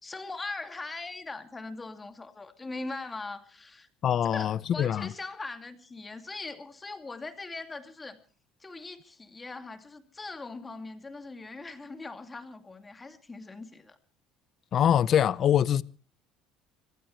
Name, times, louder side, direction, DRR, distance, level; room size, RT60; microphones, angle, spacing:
voice 1, 0.0-3.9 4.2-8.2 8.6-14.0, left 3 dB, 20° left, 2.6 m, -40 dB
voice 2, 4.0-5.1 14.7-15.8, left 9 dB, 50° left, 0.7 m, -24 dB
25.5 x 15.5 x 3.3 m
supercardioid pair, 100°, 0 cm